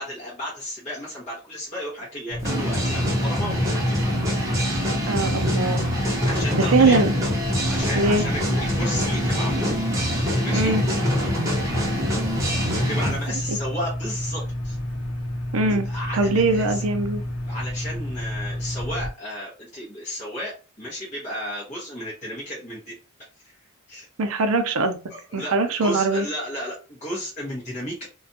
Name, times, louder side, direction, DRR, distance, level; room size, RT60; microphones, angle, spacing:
voice 1, 0.0-4.0 6.2-7.0 7.7-9.8 10.4-10.7 12.8-14.8 15.8-16.8 17.5-23.0 23.4-23.5 23.9-24.1 25.1-25.5 25.8-28.1, equal, 35° left, -7 dB, 0.9 m, -33 dB
sound 1, 2.3-19.1, left 1 dB, 70° left, 0.7 m, -30 dB
sound 2, 2.4-13.2, equal, 15° right, 0.7 m, -24 dB
voice 2, 5.0-5.9 6.5-7.2 8.0-8.2 10.5-10.8 13.5-13.6 15.5-17.2 24.2-25.0 25.3-26.3, right 3 dB, 70° right, 8 dB, 0.5 m, -22 dB
2.5 x 2.2 x 2.6 m, 0.33 s
head